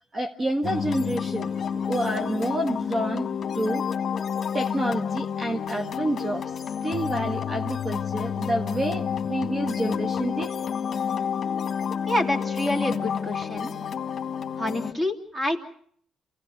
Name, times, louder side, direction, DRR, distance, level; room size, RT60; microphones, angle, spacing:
voice 1, 0.0-1.5 1.9-3.9 4.5-10.5, right 1 dB, 35° right, 4 dB, 1.5 m, -29 dB
sound 1, 0.6-14.9, left 7 dB, 45° left, 1.7 m, -29 dB
voice 2, 12.1-13.7 14.6-15.6, left 1 dB, 15° right, 4 dB, 3.0 m, -27 dB
28.0 x 17.0 x 6.6 m, 0.62 s
cardioid pair, 90°, 0 cm